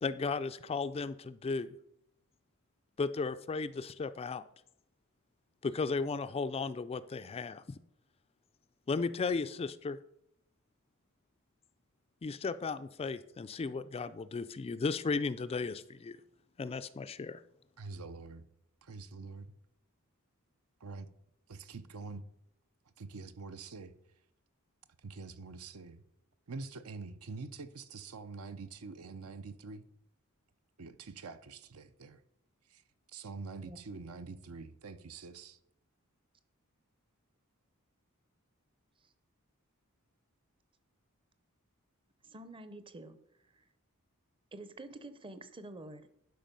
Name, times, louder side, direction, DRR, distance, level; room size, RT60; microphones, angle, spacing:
voice 1, 0.0-1.7 3.0-4.4 5.6-7.8 8.9-10.0 12.2-16.2 16.6-17.4, left 4 dB, 25° left, 0.3 m, -35 dB
voice 2, 17.8-18.4 18.8-19.5 20.8-21.1 21.5-22.2 23.0-23.9 25.0-26.0 26.5-29.9 30.8-32.2 32.7-32.8 33.1-35.6, right 4 dB, 70° right, 0.7 m, -45 dB
voice 3, 42.2-43.2 43.5-43.6 44.5-46.2, right 2 dB, 25° right, 0.7 m, -48 dB
11.5 x 5.5 x 5.3 m
head